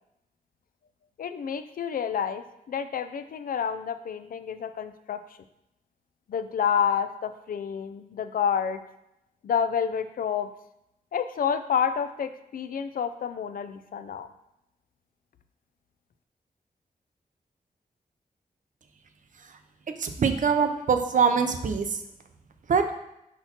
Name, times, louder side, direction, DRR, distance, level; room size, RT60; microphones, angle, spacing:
voice 1, 1.2-5.2 6.3-8.8 9.4-10.5 11.1-14.3, left 7 dB, 75° left, 11 dB, 0.4 m, -29 dB
voice 2, 20.0-21.9 22.7-22.8, right 6 dB, 60° right, 7 dB, 0.6 m, -23 dB
5.9 x 5.6 x 2.9 m, 0.85 s
wide cardioid pair, 165°, 15 cm